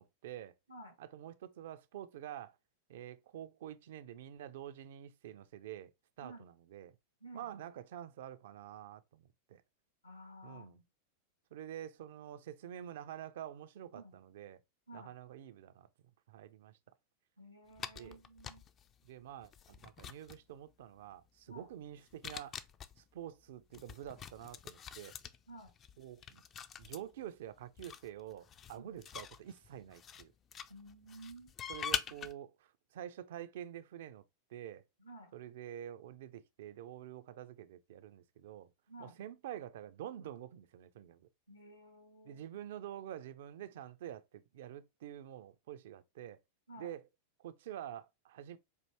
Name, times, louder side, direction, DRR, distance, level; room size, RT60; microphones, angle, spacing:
voice 1, 0.0-0.5 1.0-2.6 2.9-5.9 6.2-7.0 7.3-9.2 9.5-9.6 10.4-10.8 11.5-14.6 14.9-15.9 16.3-16.8 17.9-18.2 19.0-22.6 23.0-25.2 26.0-26.4 26.8-30.3 31.7-34.2 34.5-34.8 35.3-38.7 39.0-41.3 42.2-46.4 46.8-47.0 47.4-48.6, right 11 dB, 55° right, 0.3 m, -47 dB
voice 2, 10.0-10.8 13.9-14.2 14.9-15.1 17.4-18.7 21.5-21.7 25.5-25.7 28.7-28.9 30.7-31.5 35.0-35.3 38.9-39.2 41.5-42.5 46.7-46.9, right 1 dB, 85° left, 1.2 m, -53 dB
sound 1, 17.8-18.9 19.4-20.5 22.1-23.0 23.7-27.0 27.8-30.2 30.5-32.3, left 8 dB, 30° left, 0.3 m, -43 dB
4.4 x 2.5 x 3.2 m
figure-of-eight pair, 90°, 0 cm